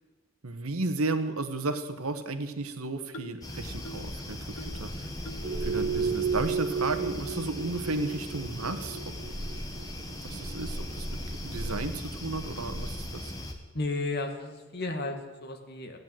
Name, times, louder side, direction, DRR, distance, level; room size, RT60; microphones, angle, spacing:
voice 1, 0.4-5.1 5.6-9.0 9.3-9.4 10.2-13.3, right 3 dB, 85° right, 8 dB, 1.4 m, -33 dB
sound 1, 3.1-3.4 3.8-4.1 4.6-4.8 5.2-5.5 6.0-6.1 6.7-6.8 7.4-7.5 8.2-8.3 8.9-9.1, equal, 70° left, 0.9 m, -45 dB
sound 2, 3.4-13.5, left 1 dB, 15° left, 1.5 m, -37 dB
sound 3, 5.4-11.6, right 5 dB, 25° right, 1.0 m, -34 dB
voice 2, 13.7-16.0, left 2 dB, 50° left, 4 dB, 1.9 m, -33 dB
15.0 x 9.4 x 9.2 m, 1.2 s
head